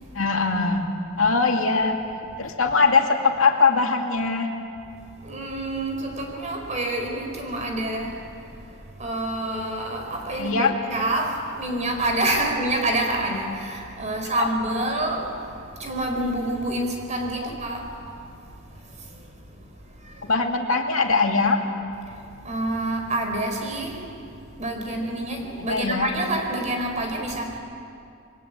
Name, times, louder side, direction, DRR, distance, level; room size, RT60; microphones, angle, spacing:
voice 1, 0.1-0.9 1.2-2.0 2.4-4.5 10.4-10.7 14.4-14.5 20.2-21.6 25.6-26.1, left 4 dB, 85° left, 2.4 m, -21 dB
voice 2, 5.2-8.3 9.0-15.5 15.8-18.1 22.4-24.2 24.6-27.6, right 1 dB, 35° right, 4.2 m, -27 dB
27.5 x 22.0 x 8.2 m
head